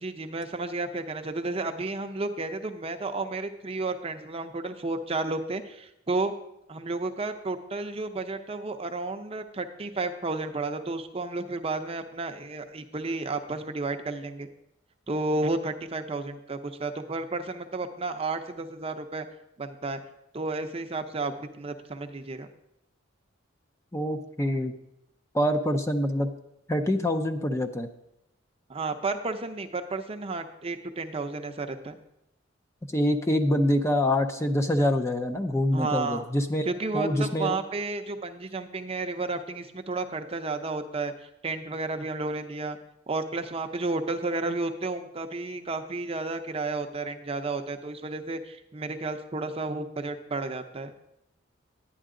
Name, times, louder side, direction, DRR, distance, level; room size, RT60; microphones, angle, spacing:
voice 1, 0.0-6.3 6.7-14.5 15.1-19.3 19.6-20.0 20.3-22.5 28.7-32.0 35.7-36.2 36.6-41.1 41.4-42.8 43.1-50.9, right 3 dB, 30° right, 6 dB, 0.6 m, -32 dB
voice 2, 23.9-24.7 25.3-26.3 26.7-27.9 32.9-36.7 36.9-37.6, left 1 dB, 15° left, 5 dB, 0.5 m, -25 dB
10.0 x 9.7 x 3.8 m, 0.81 s
head